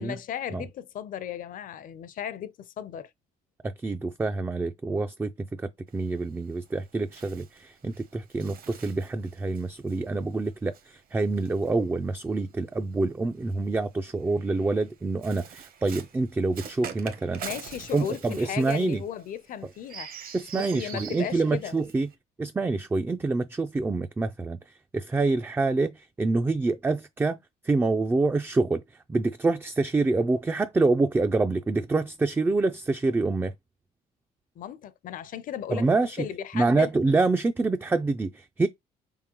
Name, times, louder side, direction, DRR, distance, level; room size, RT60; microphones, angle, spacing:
voice 1, 0.0-3.1 17.4-21.8 34.6-35.9 36.2-36.9, left 9 dB, 55° left, 0.6 m, -36 dB
voice 2, 3.6-17.4 17.9-19.0 20.3-22.1 22.4-27.4 27.6-33.5 35.7-36.3 36.5-38.7, right 3 dB, 10° right, 0.3 m, -26 dB
Bird, 5.9-12.4 13.3-22.1, right 7 dB, 60° right, 1.0 m, -45 dB
4.3 x 3.7 x 2.9 m
cardioid pair, 110°, 17 cm